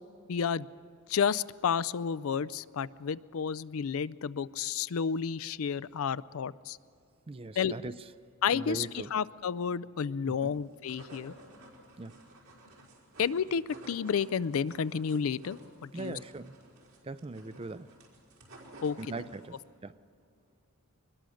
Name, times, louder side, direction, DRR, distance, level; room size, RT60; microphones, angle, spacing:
voice 1, 0.3-0.7 1.1-6.8 7.6-7.7 8.4-11.3 13.2-13.6 13.9-16.2 18.8-19.0, left 7 dB, 75° left, 17 dB, 0.4 m, -31 dB
voice 2, 7.3-8.0 8.5-9.1 10.4-10.5 12.0-12.1 15.9-16.5 17.0-17.9 19.0-19.9, right 3 dB, 25° right, 15 dB, 0.4 m, -40 dB
sound 1, 10.6-19.7, right 1 dB, 80° right, 4.8 m, -53 dB
22.5 x 21.0 x 6.4 m, 2.6 s
head